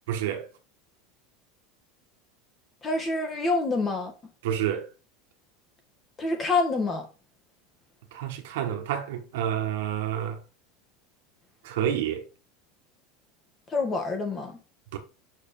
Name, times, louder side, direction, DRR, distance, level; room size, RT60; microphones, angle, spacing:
voice 1, 0.1-0.5 4.4-4.9 8.1-10.4 11.6-12.2 14.9-15.0, right 10 dB, 80° right, 1.4 m, -29 dB
voice 2, 2.8-4.1 6.2-7.1 13.7-14.5, left 3 dB, 25° left, 1.6 m, -26 dB
6.4 x 4.9 x 4.4 m
supercardioid pair, 135°, 0 cm